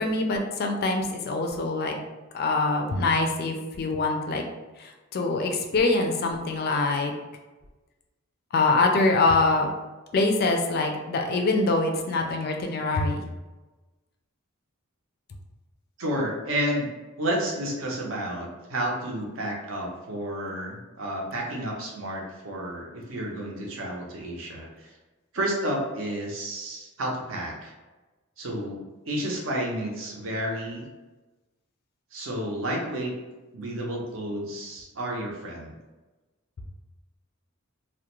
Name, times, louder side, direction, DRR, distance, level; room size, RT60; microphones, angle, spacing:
voice 1, 0.0-2.0 2.3-4.4 4.8-7.1 8.5-9.7 10.1-13.2, left 3 dB, 50° left, 3 dB, 0.3 m, -24 dB
voice 2, 16.0-16.9 17.2-25.0 25.3-27.7 28.4-30.9 32.1-33.1 33.5-35.7, right 1 dB, 65° right, -1 dB, 0.6 m, -31 dB
2.3 x 2.1 x 2.9 m, 1.2 s
head